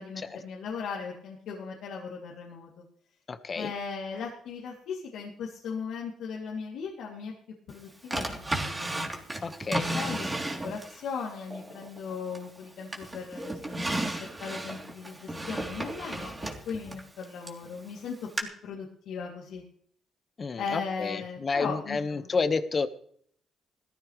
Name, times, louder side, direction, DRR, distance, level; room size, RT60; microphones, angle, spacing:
voice 1, 0.0-2.8 3.5-7.3 7.7-8.9 9.7-10.4 10.6-14.1 14.4-16.3 16.6-18.3 18.6-19.6 20.6-22.3, left 5 dB, 80° left, -3 dB, 2.9 m, -38 dB
voice 2, 3.3-3.7 9.4-10.3 20.4-22.9, left 4 dB, 40° left, 10 dB, 1.4 m, -30 dB
Drawer open or close, 8.1-11.0 11.5-12.6 12.9-17.6 18.4-18.5, right 1 dB, 20° right, 3.4 m, -33 dB
18.0 x 14.5 x 3.3 m, 0.62 s
cardioid pair, 90°, 0 cm